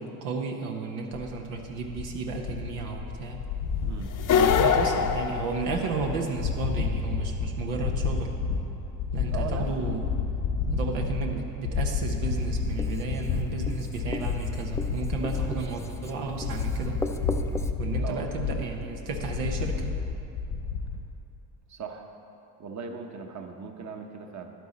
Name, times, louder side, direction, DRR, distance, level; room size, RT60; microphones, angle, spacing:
voice 1, 0.0-3.4 4.4-8.3 9.1-10.1 10.7-17.0 17.8-19.9, right 4 dB, 85° right, 2 dB, 1.1 m, -33 dB
sound 1, 1.1-21.0, left 5 dB, 85° left, 1.5 m, -31 dB
voice 2, 3.8-4.5 4.9-5.1 9.3-9.8 18.0-18.3 21.7-22.1 22.6-24.5, right 5 dB, 35° right, 4 dB, 1.1 m, -38 dB
Long Midrange Fart, 4.2-6.2, left 7 dB, 45° left, 0.7 m, -23 dB
Writing, 12.1-17.7, left 2 dB, 5° left, 0.5 m, -37 dB
11.0 x 9.2 x 4.2 m, 2.7 s
hypercardioid pair, 60°, 46 cm